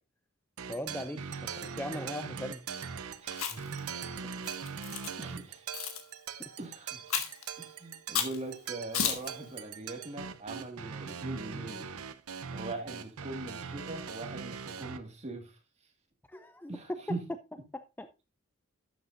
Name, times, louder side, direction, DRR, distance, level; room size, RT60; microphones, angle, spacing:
sound 1, 0.6-15.0, right 6 dB, 85° right, 0.8 m, -41 dB
voice 1, 0.7-2.6 6.4-6.5 16.3-17.0 17.7-18.1, left 1 dB, 10° left, 0.4 m, -39 dB
voice 2, 3.2-3.7 5.2-5.7 6.6-7.1 7.6-11.9 12.5-15.6 16.7-17.3, right 2 dB, 30° right, 1.9 m, -41 dB
Chewing mastication, 3.3-3.8 4.4-5.1 5.7-6.0 7.1-7.4 8.1-8.4 8.9-9.3, left 8 dB, 70° left, 1.5 m, -32 dB
12.0 x 8.1 x 2.6 m
head